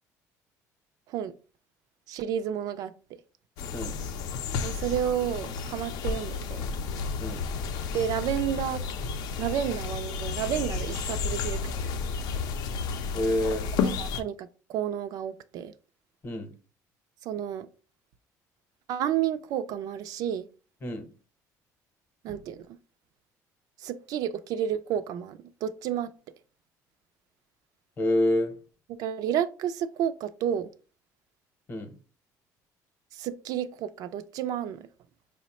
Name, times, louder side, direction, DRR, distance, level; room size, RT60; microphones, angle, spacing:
voice 1, 2.1-2.9 4.6-6.7 7.9-8.8 9.4-12.0 13.8-15.7 17.2-17.7 18.9-20.5 22.2-22.7 23.8-26.1 29.0-30.7 33.1-34.9, right 10 dB, 65° right, 0.3 m, -31 dB
sound 1, 3.6-14.2, left 5 dB, 75° left, 0.5 m, -32 dB
voice 2, 13.1-13.7 16.2-16.5 20.8-21.1 28.0-28.5 31.7-31.9, left 1 dB, 30° left, 0.8 m, -27 dB
4.7 x 2.1 x 4.1 m
cardioid pair, 145°, 7 cm